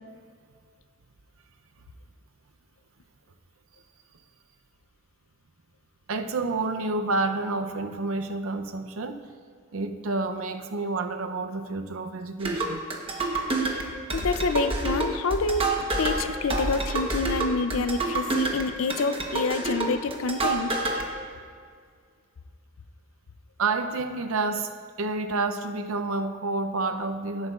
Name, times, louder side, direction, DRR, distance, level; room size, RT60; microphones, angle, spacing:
voice 1, 6.1-9.2 9.7-12.8 23.6-24.7 25.0-27.5, right 3 dB, 80° right, 7 dB, 0.6 m, -29 dB
sound 1, 12.4-21.0, right 2 dB, 25° right, 1.0 m, -28 dB
voice 2, 14.1-15.7 16.0-20.7, left 3 dB, 70° left, 11 dB, 0.5 m, -27 dB
16.5 x 8.0 x 2.4 m, 2.1 s
head